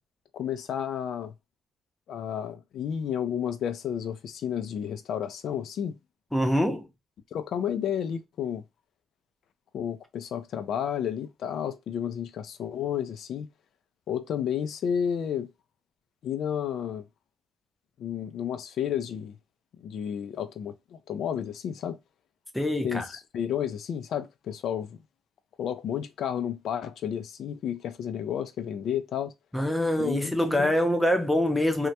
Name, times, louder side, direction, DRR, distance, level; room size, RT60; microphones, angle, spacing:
voice 1, 0.3-1.3 2.1-6.0 7.3-8.6 9.7-13.5 14.1-15.5 16.2-17.0 18.0-19.4 19.8-22.0 22.8-25.0 25.6-29.3 30.0-30.7, left 9 dB, 70° left, 0.3 m, -31 dB
voice 2, 6.3-6.8 22.5-23.0 29.5-31.9, left 1 dB, 5° left, 0.6 m, -24 dB
2.1 x 2.1 x 2.7 m
cardioid pair, 90°, 0 cm